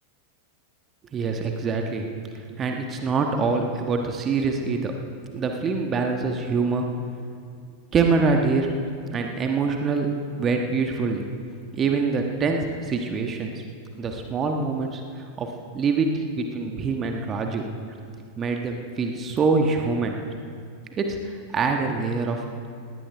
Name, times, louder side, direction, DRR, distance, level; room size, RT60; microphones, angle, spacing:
voice 1, 1.1-4.9 5.3-6.9 7.9-8.7 9.1-10.1 10.3-11.3 11.7-13.5 14.0-15.5 15.7-17.6 18.4-20.2 21.0-22.4, right 4 dB, 25° right, 3 dB, 1.3 m, -25 dB
19.5 x 17.5 x 3.5 m, 2.3 s
figure-of-eight pair, 90°, 0 cm